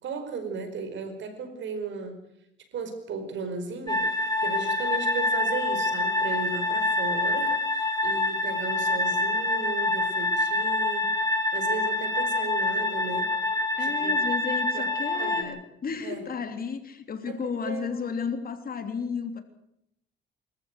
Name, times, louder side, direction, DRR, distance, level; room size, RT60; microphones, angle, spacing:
voice 1, 0.0-2.2 2.7-11.2 11.5-13.3 13.8-14.2 14.7-15.6 16.0-16.3 17.3-17.9, right 4 dB, 70° right, 8 dB, 5.0 m, -36 dB
sound 1, 3.9-15.4, left 2 dB, 20° left, 3.5 m, -26 dB
voice 2, 13.8-19.4, left 6 dB, 45° left, 7 dB, 3.2 m, -33 dB
25.5 x 14.5 x 8.1 m, 0.78 s
cardioid pair, 90°, 20 cm